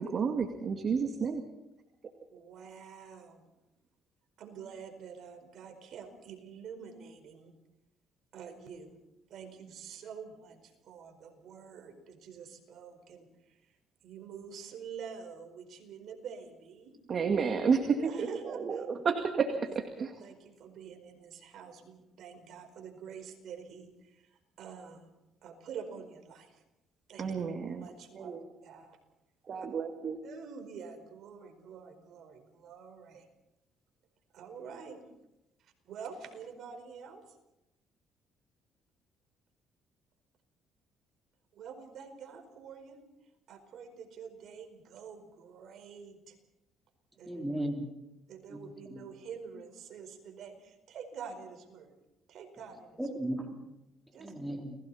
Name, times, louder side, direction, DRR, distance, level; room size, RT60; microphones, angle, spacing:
voice 1, 0.0-1.4 17.1-20.1 27.2-27.9 28.1-28.5 29.5-30.2, right 5 dB, 45° right, 5 dB, 2.0 m, -31 dB
voice 2, 2.3-3.4 4.4-7.5 8.3-9.0 9.3-13.7 14.0-17.0 17.9-18.8 19.9-25.1 25.4-26.6 27.1-27.3 27.7-28.4 28.6-29.0 29.5-29.7 30.2-33.3 34.3-35.0 35.6-37.4 41.5-43.0 43.5-46.4 47.2-47.4 48.3-51.9 52.3-53.0 54.1-54.6, right 6 dB, 65° right, 5 dB, 4.7 m, -47 dB
voice 3, 47.3-47.9 48.5-49.0 53.0-53.6 54.2-54.8, right 1 dB, 5° right, 1 dB, 3.8 m, -36 dB
30.0 x 20.5 x 4.3 m, 0.92 s
cardioid pair, 95°, 0 cm